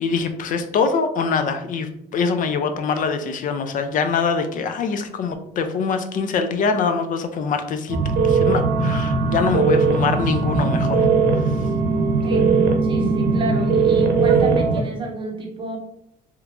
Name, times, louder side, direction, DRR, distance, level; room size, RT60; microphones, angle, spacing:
voice 1, 0.0-8.0 8.2-11.1 11.4-11.6, left 5 dB, 50° left, 8 dB, 0.5 m, -24 dB
sound 1, 7.9-14.8, right 4 dB, 70° right, 0.7 m, -19 dB
voice 2, 12.2-12.5 12.8-15.8, right 2 dB, 30° right, -1 dB, 1.0 m, -30 dB
3.0 x 2.4 x 3.3 m, 0.76 s
cardioid pair, 110°, 17 cm